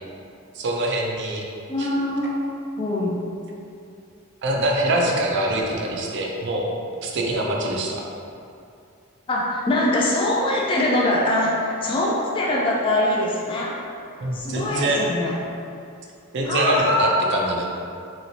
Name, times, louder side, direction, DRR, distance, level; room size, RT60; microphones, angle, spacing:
voice 1, 0.5-1.4 1.8-1.9 4.4-6.7 7.0-8.0 14.2-15.0 16.3-17.7, right 1 dB, 55° right, -1 dB, 0.4 m, -24 dB
voice 2, 1.7-2.3 2.8-3.2 7.4-7.6 9.3-13.8 14.3-15.4 16.4-17.2, left 1 dB, 25° left, -4 dB, 0.3 m, -23 dB
3.0 x 2.9 x 2.7 m, 2.5 s
head